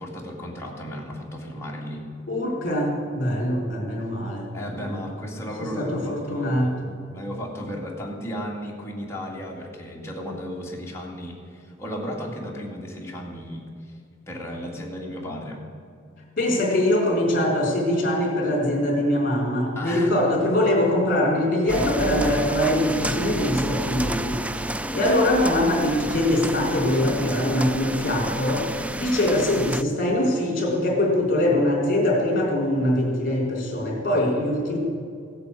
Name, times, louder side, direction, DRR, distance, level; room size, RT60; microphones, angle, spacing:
voice 1, 0.0-2.1 4.5-13.9 14.3-15.6 19.8-20.1, equal, 15° left, -3 dB, 2.3 m, -35 dB
voice 2, 2.3-4.5 4.8-5.0 5.8-6.7 16.4-24.4 24.9-34.8, left 1 dB, 45° left, -1 dB, 3.8 m, -23 dB
sound 1, 21.7-29.8, right 1 dB, 5° right, 0.3 m, -30 dB
16.0 x 8.7 x 8.3 m, 2.3 s
head